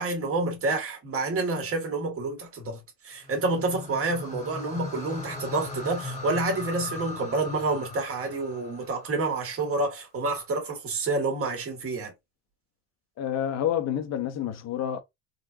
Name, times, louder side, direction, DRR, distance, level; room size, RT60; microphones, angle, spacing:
voice 1, 0.0-2.8 3.0-12.1, right 3 dB, 35° right, 1.8 m, -28 dB
sound 1, 3.2-9.5, left 2 dB, 20° left, 1.3 m, -39 dB
voice 2, 13.2-15.0, left 10 dB, 45° left, 0.9 m, -28 dB
3.8 x 2.4 x 2.7 m
supercardioid pair, 100°, 39 cm